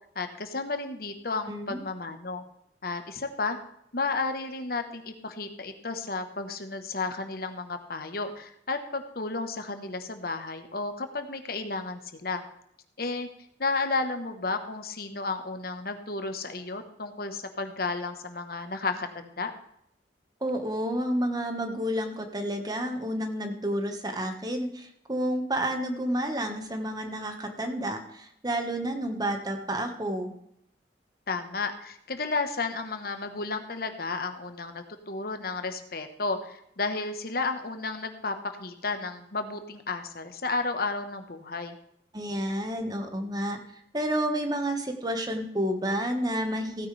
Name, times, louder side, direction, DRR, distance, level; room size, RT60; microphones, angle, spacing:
voice 1, 0.1-2.4 2.8-3.6 3.9-12.4 13.0-13.3 13.6-19.5 31.3-41.8, left 3 dB, 60° left, 7 dB, 1.3 m, -32 dB
voice 2, 1.5-1.8 20.4-30.3 42.1-43.6 43.9-46.9, right 1 dB, 20° right, 5 dB, 1.5 m, -30 dB
16.0 x 9.8 x 3.4 m, 0.73 s
head